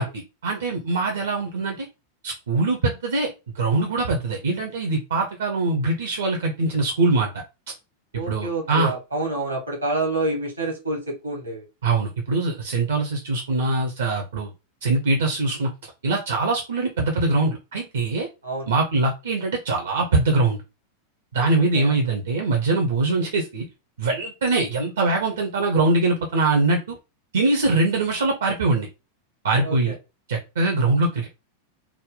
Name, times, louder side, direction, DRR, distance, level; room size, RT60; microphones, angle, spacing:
voice 1, 0.0-1.9 2.2-3.3 3.5-7.7 8.3-8.9 11.8-14.5 14.8-15.7 16.0-18.3 18.7-20.6 21.3-23.7 24.0-27.0 27.3-28.9 29.4-29.9 30.3-31.3, right 3 dB, 65° right, 2 dB, 0.7 m, -23 dB
voice 2, 8.1-11.6 18.4-18.7 21.7-21.9 29.6-29.9, right 2 dB, 85° right, 1 dB, 1.5 m, -28 dB
3.4 x 2.1 x 3.8 m, 0.27 s
figure-of-eight pair, 90°, 0 cm